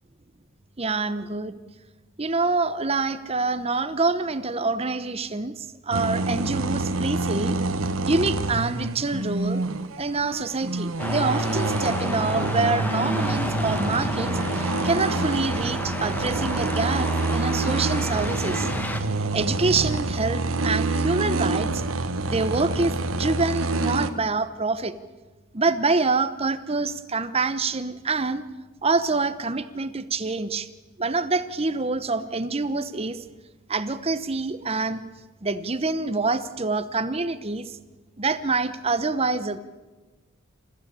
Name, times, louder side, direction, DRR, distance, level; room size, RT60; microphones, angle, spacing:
voice 1, 0.8-1.6 2.2-7.6 8.1-9.6 10.0-18.7 19.3-21.8 22.3-24.9 25.5-28.4 28.8-30.7 31.0-33.2 33.7-35.0 35.4-37.7 38.2-39.6, right 3 dB, 30° right, 13 dB, 0.9 m, -26 dB
sound 1, 5.9-24.1, right 2 dB, 75° right, 1.3 m, -27 dB
sound 2, 11.0-19.0, left 1 dB, 10° left, 1.4 m, -31 dB
28.5 x 15.0 x 8.3 m, 1.2 s
head